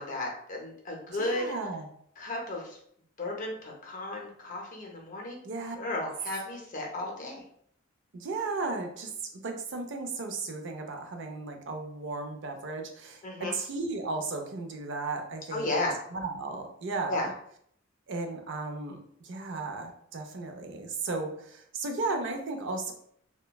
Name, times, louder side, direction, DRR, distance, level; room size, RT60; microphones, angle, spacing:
voice 1, 0.0-1.5 2.2-2.8 3.2-5.4 5.8-7.4 13.2-13.5 15.5-16.0 17.1-17.3, left 2 dB, 40° left, 0 dB, 0.6 m, -34 dB
voice 2, 1.1-1.9 5.4-5.8 8.1-17.3 18.1-19.0 19.2-22.9, right 3 dB, 60° right, 4 dB, 0.4 m, -35 dB
3.0 x 2.2 x 2.2 m, 0.66 s
head